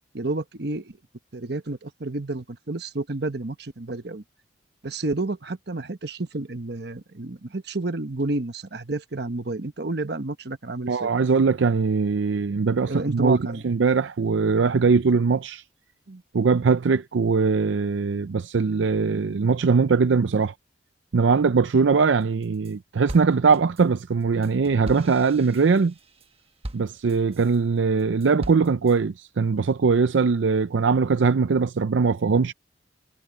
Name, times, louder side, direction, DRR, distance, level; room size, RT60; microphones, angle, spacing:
voice 1, 0.1-1.0 1.3-4.2 4.8-11.1 12.8-13.6 16.1-16.2, right 2 dB, 60° right, 1.2 m, -30 dB
voice 2, 10.9-13.4 13.6-15.6 16.3-20.5 21.1-25.9 26.7-32.5, right 5 dB, 80° right, 0.5 m, -21 dB
sound 1, 22.2-22.7 23.1-27.6 28.0-29.0, right 1 dB, 30° right, 1.1 m, -40 dB
head